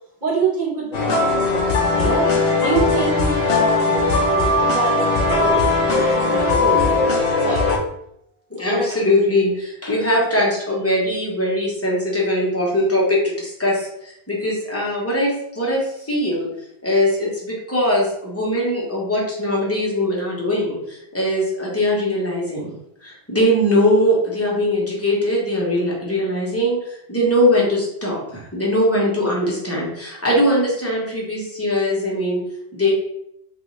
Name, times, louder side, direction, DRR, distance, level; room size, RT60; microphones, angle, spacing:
voice 1, 0.2-2.2 2.6-7.0 7.4-7.6 8.6-8.9, right 3 dB, 45° right, -5 dB, 1.3 m, -25 dB
sound 1, 0.9-7.8, left 3 dB, 65° left, 0.9 m, -19 dB
voice 2, 8.5-16.5 16.8-22.7 23.0-32.4 32.7-32.9, left 1 dB, 15° left, -4 dB, 1.0 m, -21 dB
3.3 x 2.6 x 3.1 m, 0.77 s
omnidirectional pair, 1.1 m